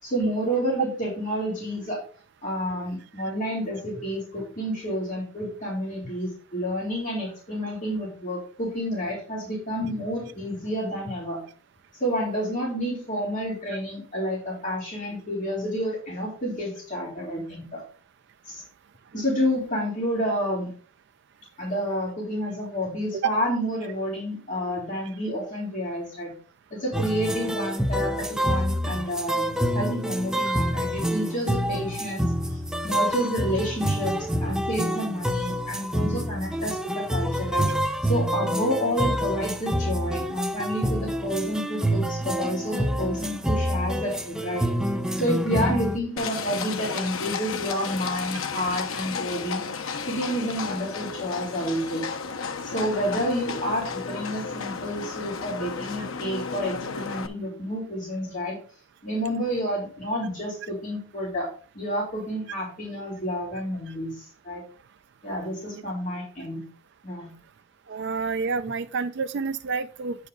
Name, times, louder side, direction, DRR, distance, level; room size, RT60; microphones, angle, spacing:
voice 1, 0.0-2.0 2.4-11.4 12.0-17.8 18.4-18.6 19.1-20.7 21.6-26.3 26.7-37.7 38.0-44.7 45.1-49.6 50.1-52.0 52.6-58.6 59.0-61.5 61.7-64.6 65.2-66.6 67.0-67.3, equal, 40° left, 3.4 m, -29 dB
sound 1, 26.9-46.0, equal, 5° right, 0.6 m, -27 dB
Livestock farm animals working animals, 46.2-57.3, left 5 dB, 80° left, 0.8 m, -33 dB
voice 2, 67.9-70.3, right 5 dB, 55° right, 0.4 m, -28 dB
9.3 x 4.8 x 5.2 m
head